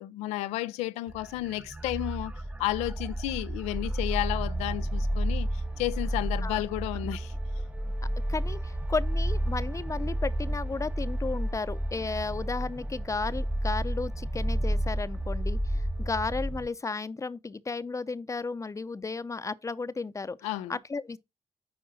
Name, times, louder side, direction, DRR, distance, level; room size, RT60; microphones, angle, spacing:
voice 1, 0.0-2.3 2.6-7.3 20.4-20.8, left 16 dB, 90° left, 0.4 m, -32 dB
sound 1, 1.1-16.7, right 1 dB, 10° right, 0.7 m, -31 dB
voice 2, 8.3-21.2, left 4 dB, 30° left, 0.6 m, -34 dB
9.5 x 3.6 x 4.1 m
supercardioid pair, 50°, 11 cm